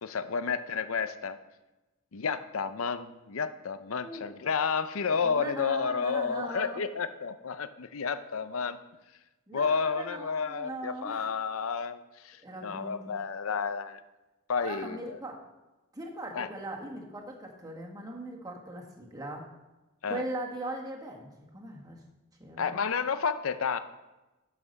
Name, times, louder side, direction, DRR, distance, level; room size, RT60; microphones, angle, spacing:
voice 1, 0.0-1.4 2.1-8.8 9.5-14.0 14.5-15.2 16.3-16.5 20.0-20.2 22.6-23.8, left 5 dB, 70° left, 12 dB, 0.6 m, -31 dB
voice 2, 4.0-4.3 5.2-6.8 9.5-11.3 12.4-13.2 14.6-15.4 15.9-19.5 20.1-22.0 22.4-22.8, right 1 dB, 15° right, 0 dB, 1.6 m, -40 dB
12.0 x 5.8 x 5.3 m, 1.1 s
head